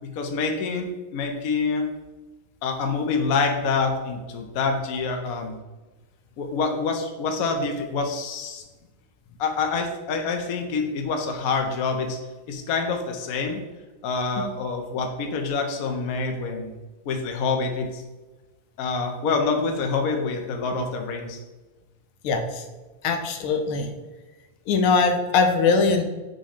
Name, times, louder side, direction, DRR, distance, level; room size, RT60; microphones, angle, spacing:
voice 1, 0.0-1.9 2.6-5.6 6.4-8.6 9.4-12.2 12.5-13.6 14.0-16.8 17.1-18.0 18.8-21.4, left 4 dB, 60° left, 4 dB, 0.9 m, -26 dB
voice 2, 22.2-22.7 23.0-23.9 24.7-26.0, left 4 dB, 85° left, 5 dB, 1.6 m, -21 dB
6.3 x 3.1 x 5.0 m, 1.2 s
omnidirectional pair, 2.3 m